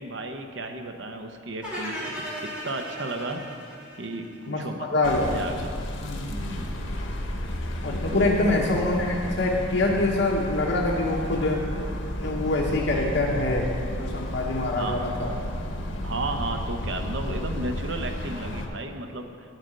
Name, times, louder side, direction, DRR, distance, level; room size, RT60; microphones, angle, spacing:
voice 1, 0.0-3.4 4.0-4.9 5.2-5.7 6.3-6.7 8.1-8.4 14.7-15.1 16.0-19.3, right 2 dB, 70° right, 5 dB, 0.8 m, -33 dB
sound 1, 1.6-4.8, equal, 5° right, 2.6 m, -36 dB
voice 2, 4.5-5.3 6.0-6.2 7.8-11.7 12.2-13.7 14.0-15.3, left 2 dB, 70° left, -4 dB, 1.1 m, -25 dB
sound 2, 5.0-18.7, left 1 dB, 90° left, 1.1 m, -32 dB
10.5 x 4.9 x 7.7 m, 2.2 s
head